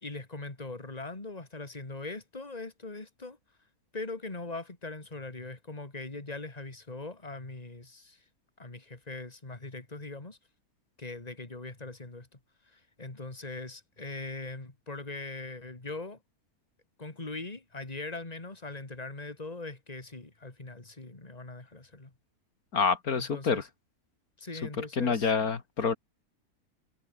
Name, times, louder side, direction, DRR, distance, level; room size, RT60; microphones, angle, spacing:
voice 1, 0.0-3.4 3.9-8.2 8.6-10.4 11.0-12.4 12.7-16.2 17.0-22.1 23.1-23.7 24.4-25.3, left 3 dB, 25° left, 2.9 m, -41 dB
voice 2, 22.7-23.6 25.0-25.9, left 5 dB, 80° left, 2.4 m, -27 dB
omnidirectional pair, 1.6 m